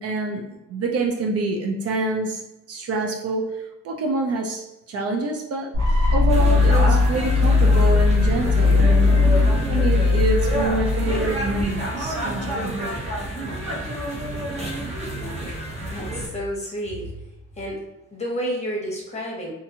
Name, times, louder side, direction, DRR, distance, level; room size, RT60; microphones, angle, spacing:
voice 1, 0.0-2.4 2.7-5.7 6.1-9.1 9.7-13.0, right 3 dB, 55° right, 1 dB, 0.5 m, -26 dB
sound 1, 5.7-11.7, left 3 dB, 85° right, 0.8 m, -18 dB
sound 2, 6.3-16.3, right 1 dB, 20° right, 0.9 m, -29 dB
voice 2, 15.9-17.1 17.6-17.8 18.1-19.5, equal, 20° left, -3 dB, 1.1 m, -30 dB
2.5 x 2.5 x 2.7 m, 0.95 s
cardioid pair, 90°, 30 cm